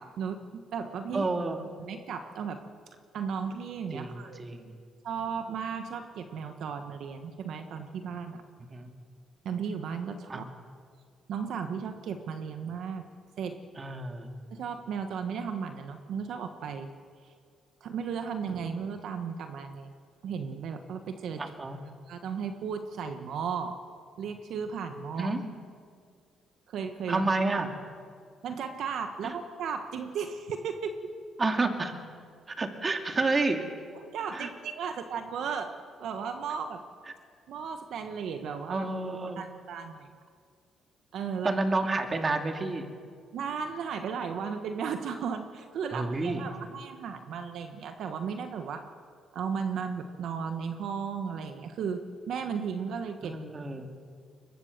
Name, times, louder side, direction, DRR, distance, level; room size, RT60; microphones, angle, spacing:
voice 1, 0.0-1.3 1.8-2.6 3.1-4.4 5.0-8.4 9.4-10.5 11.3-13.0 13.4-13.6 14.5-16.9 17.8-19.9 20.2-21.4 22.1-23.8 24.2-25.3 26.7-27.3 28.4-31.0 33.9-36.8 37.5-38.9 39.4-40.1 41.1-41.5 43.3-48.9 49.3-53.4, right 6 dB, 75° right, 7 dB, 1.3 m, -35 dB
voice 2, 1.1-1.7 3.9-4.8 8.7-8.9 10.3-10.5 13.8-14.3 21.4-21.8 25.2-25.5 27.1-27.7 29.2-29.3 31.4-31.9 32.5-33.6 34.3-34.5 38.7-39.5 41.4-42.9 45.9-46.4 53.2-53.9, right 3 dB, 30° right, 5 dB, 2.4 m, -30 dB
23.5 x 22.0 x 6.7 m, 2.1 s
cardioid pair, 90°, 0 cm